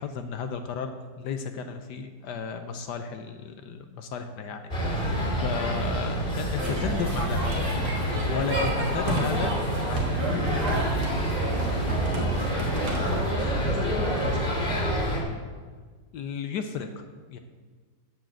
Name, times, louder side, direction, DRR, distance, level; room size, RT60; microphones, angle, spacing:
voice 1, 0.0-7.7 8.1-9.5 9.8-10.3 16.1-17.4, left 6 dB, 75° left, 7 dB, 1.3 m, -34 dB
sound 1, 4.7-15.2, equal, 30° left, 2.7 m, -27 dB
sound 2, 6.5-13.3, right 1 dB, 60° right, 2.5 m, -32 dB
voice 2, 12.1-14.6, right 2 dB, 30° right, -2 dB, 2.5 m, -36 dB
9.2 x 7.6 x 7.7 m, 1.5 s
omnidirectional pair, 1.9 m